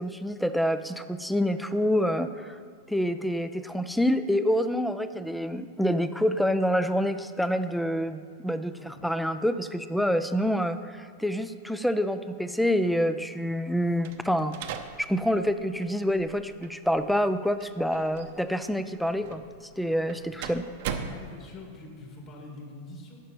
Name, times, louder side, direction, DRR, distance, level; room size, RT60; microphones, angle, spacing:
voice 1, 0.0-2.6 2.9-14.5 15.0-19.4 19.8-20.7, equal, ahead, 10 dB, 0.4 m, -27 dB
sound 1, 14.0-21.8, right 7 dB, 60° right, 0.8 m, -41 dB
voice 2, 21.0-23.2, left 2 dB, 30° left, 0 dB, 2.1 m, -44 dB
11.0 x 5.6 x 7.8 m, 2.2 s
supercardioid pair, 145°, 0 cm